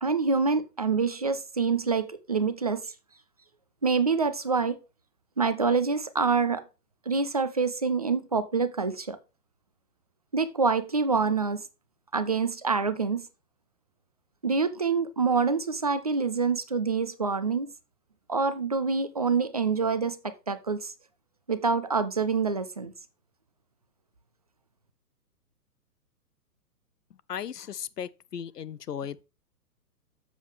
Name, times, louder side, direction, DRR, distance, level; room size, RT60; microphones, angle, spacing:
voice 1, 0.0-2.8 3.8-4.8 5.4-6.6 7.1-9.2 10.3-11.6 12.1-13.3 14.4-17.7 18.3-20.9 21.5-22.9, right 4 dB, 25° right, 0.4 m, -26 dB
voice 2, 27.3-29.2, left 8 dB, 75° left, 0.7 m, -36 dB
7.4 x 7.1 x 3.4 m
figure-of-eight pair, 120°, 48 cm